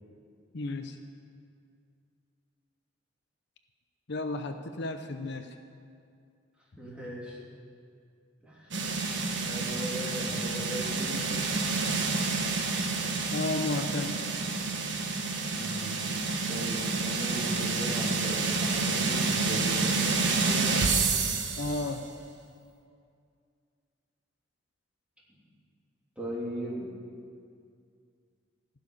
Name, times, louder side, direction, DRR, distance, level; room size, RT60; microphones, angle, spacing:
voice 1, 0.5-1.0 4.1-5.5 13.3-14.2 21.6-22.1, left 2 dB, 60° left, 7 dB, 0.7 m, -33 dB
voice 2, 6.8-7.4 8.4-9.0 9.4-11.4 15.5-16.1 16.5-20.8 26.2-26.9, equal, 5° right, -6 dB, 3.2 m, -38 dB
sound 1, 8.7-21.9, right 3 dB, 65° right, 1.3 m, -29 dB
16.0 x 7.0 x 9.9 m, 2.3 s
head